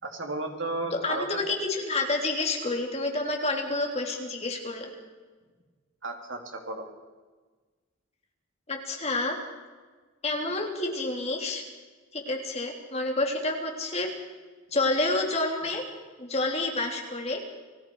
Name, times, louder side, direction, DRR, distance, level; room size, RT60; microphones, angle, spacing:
voice 1, 0.0-1.4 6.0-6.9, right 2 dB, 65° right, 3 dB, 3.5 m, -33 dB
voice 2, 1.0-4.9 8.7-9.4 10.2-11.6 12.1-14.1 14.7-15.8 16.2-17.4, left 2 dB, 30° left, 2 dB, 3.3 m, -29 dB
29.0 x 20.0 x 4.9 m, 1.4 s
head